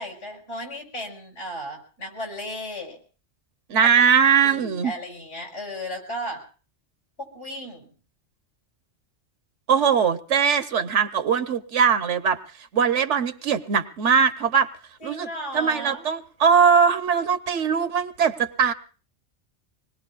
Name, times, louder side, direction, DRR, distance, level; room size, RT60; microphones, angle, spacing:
voice 1, 0.0-3.0 4.1-4.2 4.4-6.4 7.2-7.9 15.0-16.1, equal, 75° left, 1 dB, 6.7 m, -35 dB
voice 2, 3.7-4.9 9.7-12.4 12.7-14.7 15.0-15.3 15.5-18.7, right 6 dB, 80° right, 10 dB, 1.3 m, -20 dB
25.5 x 20.5 x 2.5 m, 0.37 s
omnidirectional pair, 1.2 m